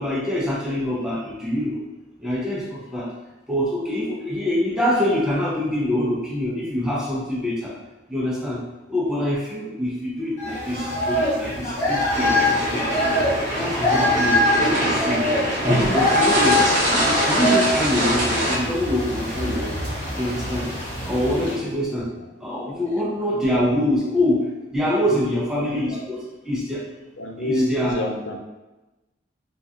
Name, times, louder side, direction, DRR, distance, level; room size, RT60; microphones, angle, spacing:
voice 1, 0.0-1.8 2.2-3.1 3.5-7.8 8.1-8.6 8.9-13.2 13.6-15.3 15.6-16.6 16.9-19.9 20.2-20.7 21.0-22.1 22.4-24.4 24.7-26.9 27.4-28.0, left 1 dB, 5° right, -6 dB, 0.6 m, -25 dB
sound 1, 10.4-21.5, left 1 dB, 35° left, 1.3 m, -24 dB
sound 2, 12.1-18.6, right 1 dB, 40° right, 0.9 m, -23 dB
voice 2, 21.0-21.7 23.3-23.4 24.0-24.1 25.0-25.4 25.9-26.0 27.2-28.4, left 1 dB, 80° left, 1 dB, 0.5 m, -28 dB
3.6 x 2.4 x 2.7 m, 1.1 s
head